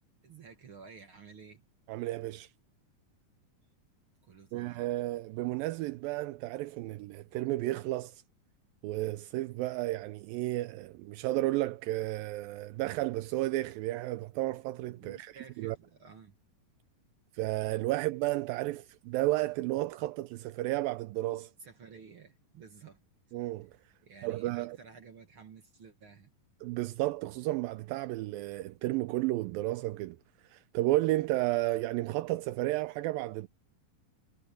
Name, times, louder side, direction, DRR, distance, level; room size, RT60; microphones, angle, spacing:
voice 1, 0.2-1.7 4.2-4.8 14.9-16.4 17.8-17.9 21.6-23.0 24.0-26.3, right 5 dB, 45° right, 2.0 m, -52 dB
voice 2, 1.9-2.5 4.5-8.2 8.8-15.3 15.6-15.8 17.3-21.5 23.3-23.7 24.2-24.8 26.6-30.2 30.5-33.5, right 17 dB, 80° right, 2.4 m, -32 dB
omnidirectional pair, 4.1 m